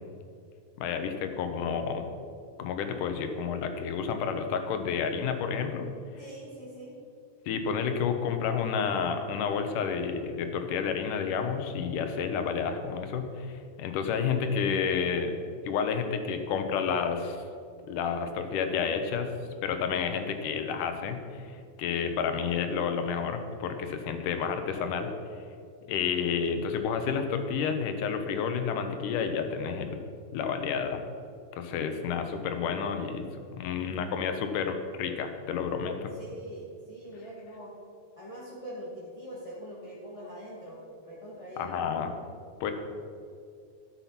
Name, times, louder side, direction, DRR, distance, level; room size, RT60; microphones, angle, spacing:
voice 1, 0.8-2.1 2.6-5.9 7.5-13.5 13.8-15.3 15.7-17.4 17.9-19.3 19.6-25.1 25.9-30.0 30.3-31.0 31.5-33.2 33.6-36.1 41.6-42.1 42.6-42.7, left 6 dB, 85° left, 7 dB, 2.5 m, -30 dB
voice 2, 6.2-6.9 36.1-37.7 38.2-41.8, right 1 dB, 15° left, -7 dB, 1.4 m, -43 dB
12.5 x 7.6 x 5.9 m, 2.3 s
omnidirectional pair, 3.6 m